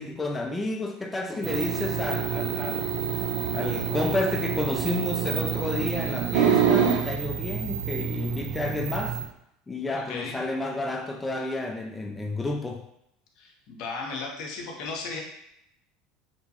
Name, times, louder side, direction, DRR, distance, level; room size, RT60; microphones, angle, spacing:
voice 1, 0.0-2.9 3.5-9.2 9.7-12.9, left 2 dB, 15° left, 2 dB, 0.3 m, -30 dB
sound 1, 1.4-9.3, right 7 dB, 70° right, 0.4 m, -27 dB
voice 2, 13.4-15.2, left 4 dB, 65° left, 1 dB, 0.6 m, -35 dB
2.9 x 2.2 x 2.8 m, 0.76 s
hypercardioid pair, 80°, 0 cm